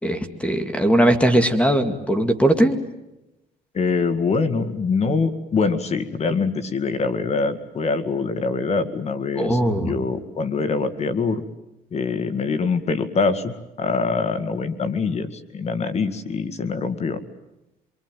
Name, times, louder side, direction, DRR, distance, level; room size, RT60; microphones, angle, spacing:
voice 1, 0.0-2.8 9.4-9.9, right 1 dB, 5° left, 9 dB, 2.4 m, -19 dB
voice 2, 3.7-11.4 11.9-17.2, left 4 dB, 40° left, 12 dB, 2.1 m, -24 dB
27.0 x 24.0 x 9.2 m, 0.92 s
cardioid pair, 110°, 17 cm